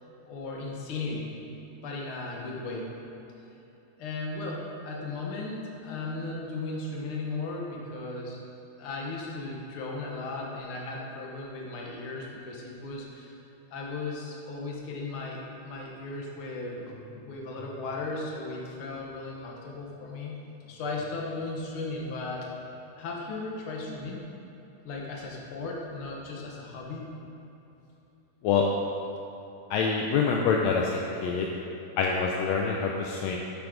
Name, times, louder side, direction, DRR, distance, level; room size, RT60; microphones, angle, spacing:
voice 1, 0.2-1.3 1.8-2.9 4.0-8.4 8.8-13.3 13.7-20.3 20.7-22.5 23.0-24.2 24.8-27.1, left 3 dB, 60° left, -2 dB, 1.5 m, -36 dB
voice 2, 29.7-31.5 32.0-33.4, left 5 dB, 80° left, 0 dB, 1.5 m, -26 dB
8.8 x 6.0 x 5.0 m, 3.0 s
omnidirectional pair, 3.6 m